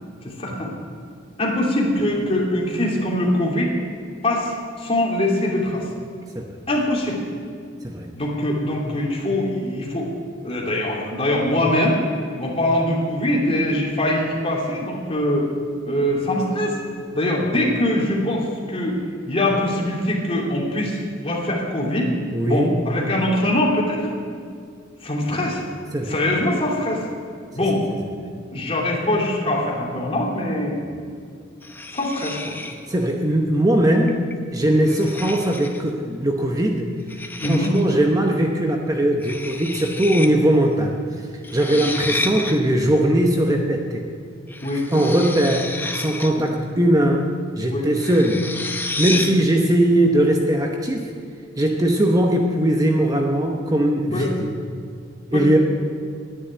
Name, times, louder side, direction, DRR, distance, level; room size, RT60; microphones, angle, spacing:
voice 1, 0.2-0.7 1.4-3.8 4.2-5.9 6.7-7.2 8.1-10.1 10.4-12.0 12.4-15.5 15.8-16.8 17.1-18.9 19.3-22.1 22.4-24.1 25.0-25.6 26.0-27.0 27.5-27.8 28.5-30.8 31.9-32.5 34.7-34.9 37.4-37.8 41.7-41.8 44.6-44.9 46.3-46.4 47.7-47.9 49.1-49.2 54.1-54.3 55.3-55.5, left 1 dB, 30° left, -3 dB, 2.8 m, -23 dB
voice 2, 22.3-22.8 25.9-26.2 32.9-36.9 37.4-40.9 41.5-44.0 44.9-47.3 47.6-48.5 49.0-51.1 51.6-54.5 55.3-55.6, right 1 dB, 20° right, 1 dB, 0.9 m, -20 dB
sound 1, 31.6-32.9 34.1-34.3 34.9-35.9 37.1-37.9 39.2-40.3 40.5-40.6 41.4-42.6 44.5-46.5 48.0-49.4, left 2 dB, 10° left, 0.8 m, -30 dB
11.0 x 10.0 x 9.6 m, 2.3 s
head